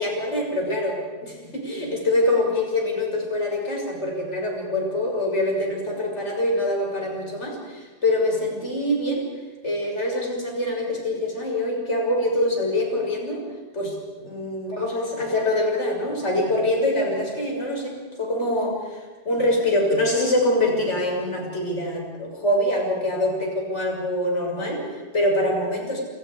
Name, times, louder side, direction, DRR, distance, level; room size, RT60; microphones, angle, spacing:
voice 1, 0.0-9.3 9.6-13.4 13.7-19.0 19.2-26.0, left 1 dB, 20° left, -1 dB, 6.5 m, -24 dB
29.0 x 27.5 x 4.9 m, 1.3 s
omnidirectional pair, 3.3 m